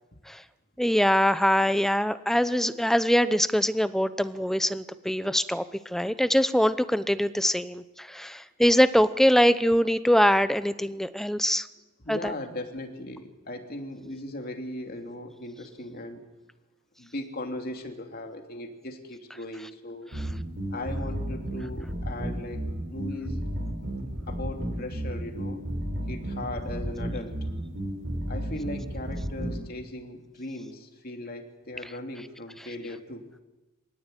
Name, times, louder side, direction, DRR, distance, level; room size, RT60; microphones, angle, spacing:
voice 1, 0.8-11.7 12.1-12.3, equal, ahead, 13 dB, 0.8 m, -23 dB
voice 2, 12.0-16.2 17.0-20.1 20.7-22.6 22.9-23.4 24.3-25.6 26.1-27.3 28.3-33.2, left 1 dB, 45° left, 4 dB, 3.1 m, -38 dB
sound 1, 20.1-29.6, equal, 60° right, 4.2 m, -32 dB
25.5 x 18.0 x 9.2 m, 1.1 s
head